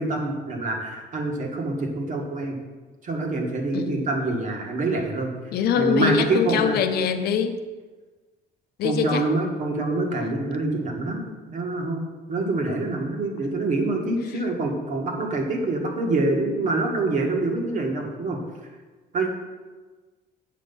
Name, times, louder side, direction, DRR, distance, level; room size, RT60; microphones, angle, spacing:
voice 1, 0.0-2.6 3.0-5.3 5.7-6.8 8.8-18.4 19.1-19.3, right 2 dB, 50° right, 1 dB, 1.6 m, -26 dB
voice 2, 3.7-4.1 5.5-7.6 8.8-9.3 14.3-14.4, left 7 dB, 70° left, 8 dB, 0.7 m, -24 dB
7.5 x 5.3 x 5.4 m, 1.3 s
cardioid pair, 110°, 17 cm